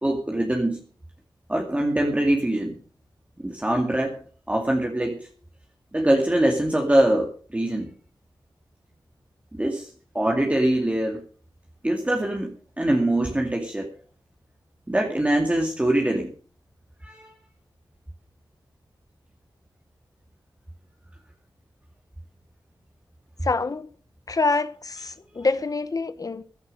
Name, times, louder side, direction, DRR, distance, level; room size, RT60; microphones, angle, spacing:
voice 1, 0.0-0.8 1.5-2.8 3.4-4.2 4.5-5.3 5.9-7.9 9.5-11.2 11.8-12.5 12.8-13.9 14.9-16.3 17.0-17.3, right 1 dB, 15° right, 2.3 m, -23 dB
voice 2, 23.4-23.9 24.3-26.4, left 3 dB, 45° left, 1.0 m, -26 dB
15.5 x 11.0 x 5.4 m
wide cardioid pair, 80°, 9 cm